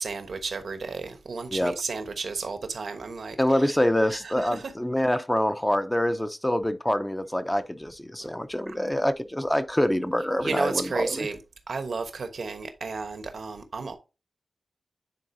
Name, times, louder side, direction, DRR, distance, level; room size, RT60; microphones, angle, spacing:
voice 1, 0.0-3.8 4.1-4.7 8.2-8.3 10.4-11.4 11.7-14.0, right 4 dB, 75° right, 1.1 m, -33 dB
voice 2, 3.4-11.3, left 1 dB, 10° left, 0.6 m, -25 dB
9.8 x 3.9 x 2.7 m
cardioid pair, 70°, 0 cm